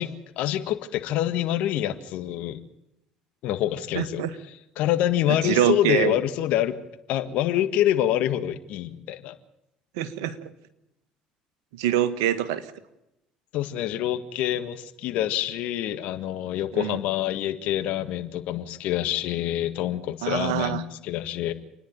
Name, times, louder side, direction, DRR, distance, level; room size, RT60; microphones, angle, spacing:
voice 1, 0.0-2.6 3.4-4.2 4.8-6.8 7.1-9.4 13.5-21.5, left 12 dB, 70° left, 10 dB, 1.7 m, -26 dB
voice 2, 3.9-4.3 5.3-6.2 10.0-10.4 11.8-12.6 16.7-17.0 20.2-20.8, right 11 dB, 85° right, 11 dB, 1.5 m, -25 dB
28.0 x 10.5 x 8.8 m, 0.87 s
hypercardioid pair, 70°, 2 cm